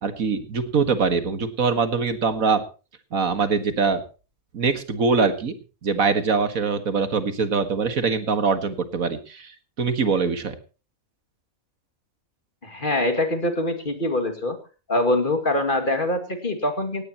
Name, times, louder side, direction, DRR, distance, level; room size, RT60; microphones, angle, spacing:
voice 1, 0.0-2.6 3.1-4.0 4.5-5.5 5.8-9.5 9.8-10.6, right 5 dB, 75° right, 10 dB, 2.1 m, -23 dB
voice 2, 12.6-14.6 14.9-17.0, left 1 dB, 35° left, 7 dB, 2.5 m, -24 dB
17.5 x 17.5 x 3.0 m, 0.33 s
omnidirectional pair, 1.5 m